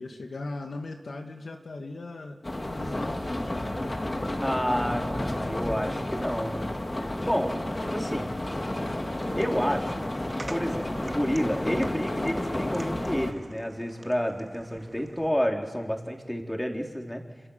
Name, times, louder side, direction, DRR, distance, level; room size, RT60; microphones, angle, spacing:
voice 1, 0.0-2.4 2.7-3.7, left 2 dB, 75° left, 3 dB, 2.1 m, -38 dB
sound 1, 2.4-13.3, left 1 dB, 30° left, 2.4 m, -31 dB
voice 2, 4.4-6.7 7.0-7.5 7.9-8.3 9.3-10.0 10.5-17.2, equal, 10° left, 2 dB, 3.9 m, -29 dB
sound 2, 9.1-15.3, right 2 dB, 30° right, 1.9 m, -47 dB
28.5 x 27.0 x 7.3 m, 1.3 s
wide cardioid pair, 80°, 0 cm